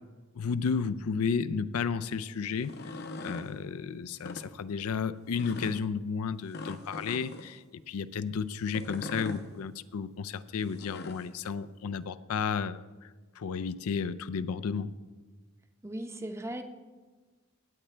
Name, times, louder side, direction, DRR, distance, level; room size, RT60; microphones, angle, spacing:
voice 1, 0.4-14.9, left 6 dB, 85° left, 14 dB, 0.4 m, -33 dB
sound 1, 2.6-3.5 4.1-4.5 5.3-5.8 6.5-7.5 8.7-9.4 10.6-11.3, left 3 dB, 50° left, 0.7 m, -41 dB
voice 2, 15.8-16.6, right 1 dB, 10° right, 6 dB, 0.6 m, -37 dB
16.5 x 8.7 x 3.3 m, 1.3 s
head